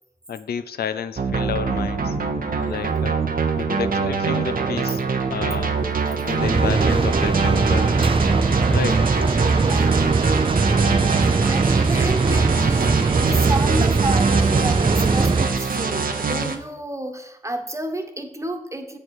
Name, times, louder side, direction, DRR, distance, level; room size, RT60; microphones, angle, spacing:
voice 1, 0.3-2.2 2.5-5.0 5.3-5.9 6.2-7.9 8.7-9.0, left 7 dB, 90° left, 11 dB, 0.4 m, -30 dB
sound 1, 1.2-16.6, right 5 dB, 65° right, 0.8 m, -24 dB
sound 2, 6.4-15.5, right 4 dB, 35° right, 0.5 m, -20 dB
voice 2, 9.6-10.2 11.5-19.0, right 1 dB, 20° right, 5 dB, 1.2 m, -31 dB
7.7 x 4.5 x 6.4 m, 0.83 s
cardioid pair, 50°, 16 cm